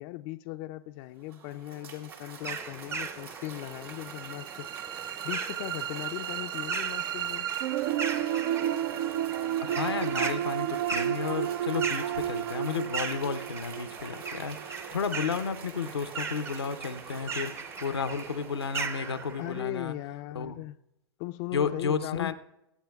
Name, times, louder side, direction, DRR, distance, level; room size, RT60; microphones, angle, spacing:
voice 1, 0.0-4.7 5.2-7.5 19.4-20.8 21.2-22.3, left 17 dB, 45° left, 0.4 m, -38 dB
Cheering / Applause, 1.0-19.6, right 5 dB, 75° right, 2.1 m, -46 dB
sound 1, 2.4-19.6, right 4 dB, 20° right, 0.6 m, -39 dB
sound 2, 3.8-15.8, right 12 dB, 60° right, 0.4 m, -32 dB
voice 2, 9.6-19.9 20.3-20.6 21.5-22.3, left 6 dB, 90° left, 0.7 m, -32 dB
23.5 x 8.7 x 2.3 m
hypercardioid pair, 105°, 13 cm